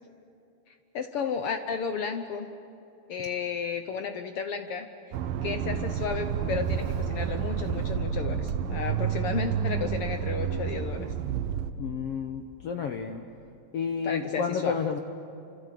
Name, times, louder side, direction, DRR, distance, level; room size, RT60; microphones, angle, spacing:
voice 1, 0.9-2.5 3.1-4.9 5.4-11.1 14.0-14.8, left 6 dB, 85° left, 7 dB, 1.2 m, -33 dB
Accelerating revving vroom, 5.1-11.7, right 8 dB, 80° right, 2.7 m, -30 dB
voice 2, 11.8-13.2 13.7-15.0, left 6 dB, 65° left, 5 dB, 1.6 m, -31 dB
29.5 x 26.5 x 7.7 m, 2.7 s
omnidirectional pair, 3.9 m